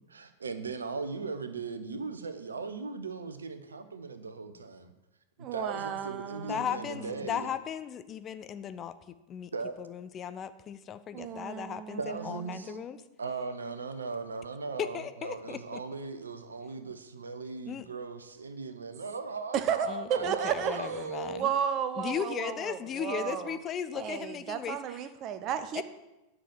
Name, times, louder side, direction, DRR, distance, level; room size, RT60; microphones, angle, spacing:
voice 1, 0.1-4.9 5.5-7.5 9.5-9.8 12.0-12.8 13.2-21.5, right 4 dB, 75° right, 9 dB, 0.9 m, -38 dB
voice 2, 5.4-7.3 11.1-12.3 12.6-12.8 19.5-20.8 21.3-23.6 23.9-25.8, right 8 dB, 35° right, 11 dB, 0.9 m, -33 dB
voice 3, 6.5-9.5 9.8-13.0 14.8-15.8 17.7-17.8 19.9-21.5 22.0-25.0 25.7-25.8, left 8 dB, 25° left, 12 dB, 0.6 m, -37 dB
10.0 x 6.1 x 7.8 m, 0.99 s
figure-of-eight pair, 90°, 0 cm